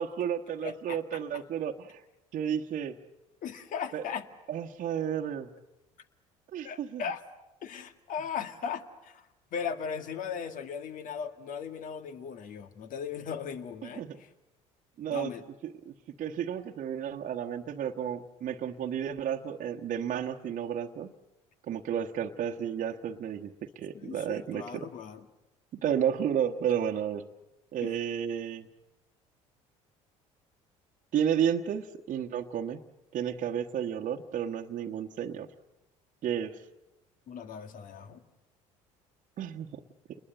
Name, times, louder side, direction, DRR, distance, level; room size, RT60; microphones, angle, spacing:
voice 1, 0.0-2.0 2.3-2.9 3.9-4.0 4.5-5.5 6.5-7.0 13.8-14.2 15.0-15.3 15.8-21.1 21.7-24.9 25.7-27.2 27.7-28.7 31.1-32.8 33.1-35.5 36.2-36.6 39.4-39.8, right 9 dB, 50° right, 1 dB, 1.2 m, -32 dB
voice 2, 0.6-1.0 3.4-4.3 6.6-7.2 7.6-14.3 15.1-15.4 23.9-25.2 27.8-28.0 37.3-38.2, left 7 dB, 55° left, 8 dB, 1.9 m, -38 dB
29.5 x 21.0 x 7.9 m, 0.97 s
hypercardioid pair, 65°, 16 cm